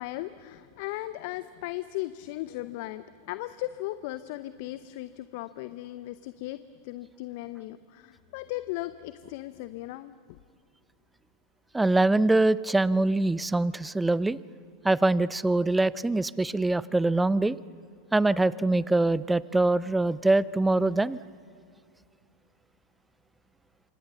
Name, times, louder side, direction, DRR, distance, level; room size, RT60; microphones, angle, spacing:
voice 1, 0.0-6.6 6.8-10.1, left 16 dB, 55° left, 14 dB, 0.7 m, -37 dB
voice 2, 11.7-14.4 14.8-17.6 18.1-21.2, right 2 dB, 10° right, 19 dB, 0.6 m, -24 dB
28.0 x 25.5 x 7.0 m, 2.3 s
hypercardioid pair, 95°, 0 cm